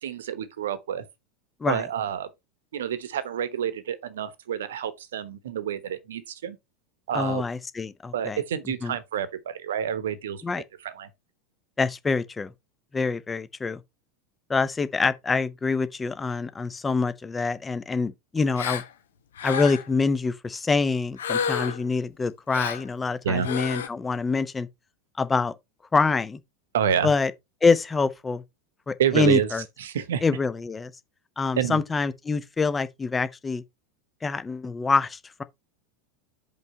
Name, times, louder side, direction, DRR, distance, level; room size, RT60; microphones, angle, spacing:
voice 1, 0.0-1.0 1.7-2.3 2.7-6.6 7.1-7.4 8.1-10.4 10.8-11.1 23.2-23.5 26.7-27.1 29.0-29.5 29.8-30.2 31.6-31.8, right 9 dB, 65° right, 0.9 m, -28 dB
voice 2, 7.1-8.4 8.8-8.9 10.4-10.6 11.8-12.5 12.9-13.8 14.5-18.8 19.4-24.7 25.2-25.5 25.9-26.4 27.0-27.3 27.6-28.4 28.9-29.6 30.2-30.9 31.4-33.6 34.2-35.4, left 4 dB, 15° left, 0.7 m, -25 dB
Gasp, 18.6-18.9 19.4-19.9 21.2-21.9 22.5-22.9 23.4-23.9, left 7 dB, 70° left, 1.0 m, -30 dB
5.4 x 4.6 x 5.4 m
figure-of-eight pair, 85°, 0 cm